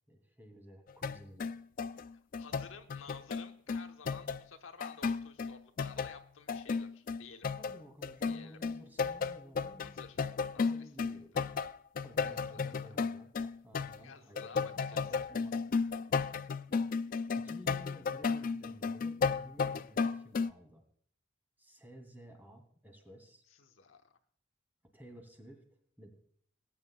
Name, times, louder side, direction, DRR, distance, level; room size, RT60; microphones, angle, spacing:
voice 1, 0.1-1.6 7.6-10.0 10.6-11.6 12.0-15.0 15.3-15.8 17.3-20.8 21.6-23.4 24.9-25.6 26.0-26.2, equal, 10° right, 3 dB, 2.3 m, -54 dB
sound 1, 0.9-4.5 4.8-6.2 6.5-14.0 14.4-20.5, left 5 dB, 45° left, 0.4 m, -34 dB
voice 2, 2.4-7.5 8.2-8.6 9.8-10.2 10.5-11.2 12.2-13.0 14.0-15.0 23.6-24.1, left 5 dB, 85° left, 5 dB, 1.1 m, -53 dB
19.5 x 9.5 x 2.3 m, 0.62 s
head